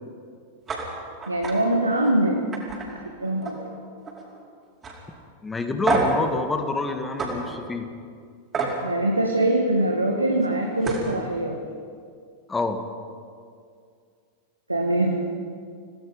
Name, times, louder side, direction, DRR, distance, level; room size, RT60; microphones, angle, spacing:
sound 1, 0.7-0.8 1.2-1.5 1.9-2.1 2.5-3.7 4.0-4.4 4.8-4.9 5.9-6.2 7.2-7.3 8.5-8.8 10.4-10.5 10.8-11.1, right 3 dB, 20° right, 5.0 m, -27 dB
voice 1, 1.3-2.4 2.9-3.7 8.8-11.6 14.7-15.3, right 1 dB, 85° right, 1 dB, 1.8 m, -23 dB
voice 2, 5.4-7.9 12.5-12.8, left 3 dB, 15° left, 7 dB, 2.0 m, -27 dB
27.5 x 18.5 x 5.4 m, 2.2 s
figure-of-eight pair, 90°, 0 cm